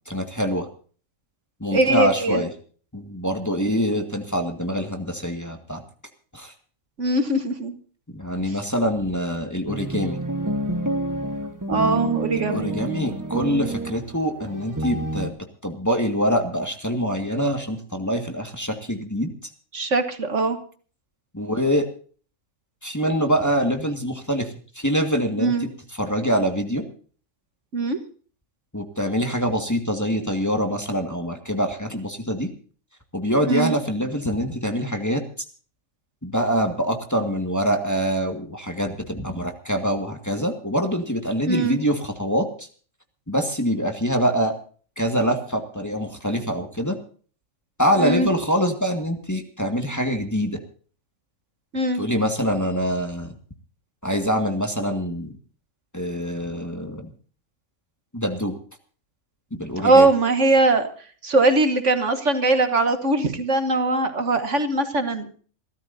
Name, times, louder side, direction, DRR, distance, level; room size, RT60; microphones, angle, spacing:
voice 1, 0.1-0.7 1.6-2.5 2.9-5.8 6.3-6.5 8.1-10.2 12.3-15.3 15.6-19.3 21.3-21.9 22.8-26.9 28.7-32.5 33.1-35.5 36.2-42.7 43.3-44.5 45.0-47.0 47.8-50.6 52.0-53.3 54.0-55.3 55.9-57.1 58.1-58.6 59.5-60.1, equal, 10° left, 4 dB, 1.9 m, -25 dB
voice 2, 1.7-2.4 7.0-7.7 8.5-8.6 11.7-12.7 19.7-20.6 25.4-25.7 27.7-28.0 33.5-33.8 41.5-41.8 48.0-48.3 51.7-52.0 59.8-60.9 61.2-65.3, right 2 dB, 60° right, 8 dB, 1.7 m, -21 dB
sound 1, 9.7-15.3, right 2 dB, 15° right, 1.3 m, -28 dB
28.5 x 13.5 x 2.7 m, 0.42 s
omnidirectional pair, 1.5 m